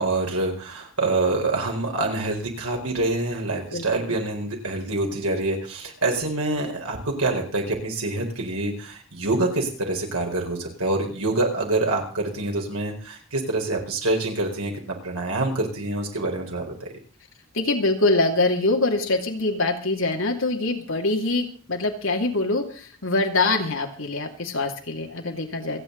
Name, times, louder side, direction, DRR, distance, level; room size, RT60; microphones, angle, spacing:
voice 1, 0.0-16.9, right 2 dB, 90° right, 1 dB, 4.5 m, -26 dB
voice 2, 17.5-25.8, left 2 dB, 65° left, 3 dB, 2.7 m, -24 dB
27.5 x 9.2 x 4.0 m, 0.38 s
head